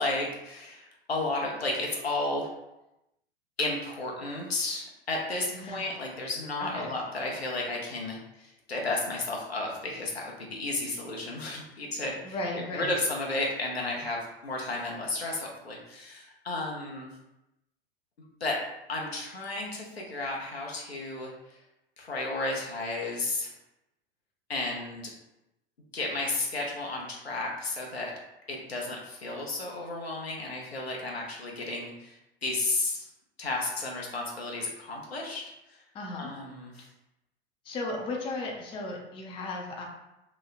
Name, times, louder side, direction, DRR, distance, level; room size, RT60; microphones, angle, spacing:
voice 1, 0.0-2.5 3.6-12.4 12.7-17.1 18.4-18.6 18.9-21.6 22.0-23.5 24.5-25.1 25.9-28.1 28.5-33.1 33.4-35.4 35.7-35.8 36.2-36.9, left 2 dB, 85° left, -2 dB, 0.6 m, -33 dB
voice 2, 5.5-5.9 6.6-6.9 12.2-13.0 35.9-36.3 37.6-39.8, left 2 dB, 20° left, 0 dB, 0.4 m, -35 dB
3.0 x 2.1 x 2.4 m, 0.93 s
figure-of-eight pair, 80°, 30 cm